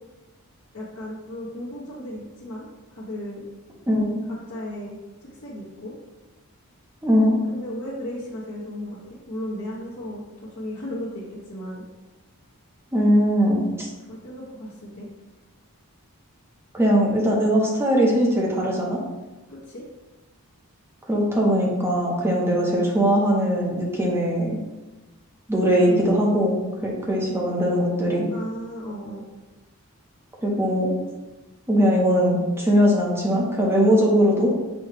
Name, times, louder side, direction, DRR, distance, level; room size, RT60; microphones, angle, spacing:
voice 1, 0.7-3.5 4.3-5.9 7.5-11.8 14.1-15.1 19.5-19.8 25.8-26.1 28.3-29.2, equal, 60° left, -9 dB, 1.0 m, -35 dB
voice 2, 3.9-4.2 7.0-7.4 12.9-13.9 16.7-19.0 21.1-24.6 25.5-26.5 26.8-28.3 30.4-30.9 31.7-34.5, equal, 10° right, -3 dB, 0.7 m, -20 dB
6.1 x 2.3 x 3.3 m, 1.1 s
head